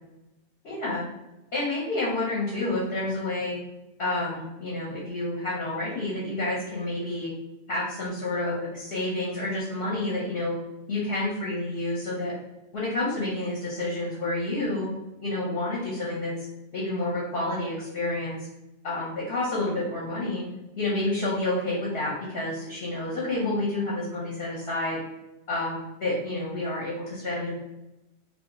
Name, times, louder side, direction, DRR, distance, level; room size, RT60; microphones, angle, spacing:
voice 1, 0.6-1.1 1.5-3.6 4.0-7.3 7.7-10.5 10.9-12.3 12.7-14.9 15.2-16.3 16.7-18.4 18.8-20.4 20.8-25.0 25.5-27.5, left 2 dB, 55° left, -6 dB, 1.0 m, -29 dB
2.5 x 2.0 x 3.5 m, 0.95 s
omnidirectional pair, 1.4 m